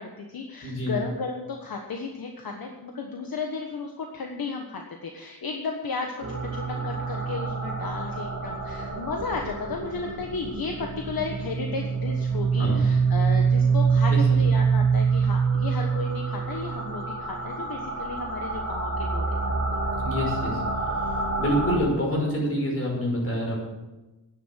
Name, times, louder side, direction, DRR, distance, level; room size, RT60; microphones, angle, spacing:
voice 1, 0.0-19.3 19.7-19.8, left 4 dB, 65° left, 2 dB, 1.4 m, -34 dB
voice 2, 0.6-0.9 12.6-12.8 14.1-14.2 20.0-20.6 21.4-23.6, equal, 35° left, -1 dB, 5.4 m, -26 dB
sound 1, 6.2-21.8, right 5 dB, 40° right, 2.3 m, -26 dB
11.0 x 9.6 x 7.5 m, 1.1 s
wide cardioid pair, 140°, 39 cm